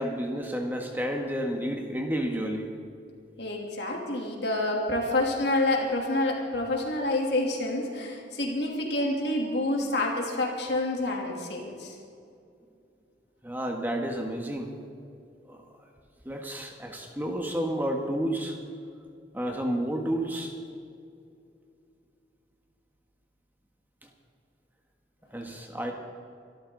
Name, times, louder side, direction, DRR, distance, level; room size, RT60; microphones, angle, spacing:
voice 1, 0.0-2.7 13.4-14.7 15.5-15.6 16.2-18.5 19.3-20.5 25.3-25.9, equal, 10° right, 2 dB, 1.4 m, -30 dB
voice 2, 3.4-11.9, left 2 dB, 70° left, 0 dB, 3.1 m, -28 dB
24.5 x 13.0 x 4.0 m, 2.5 s
head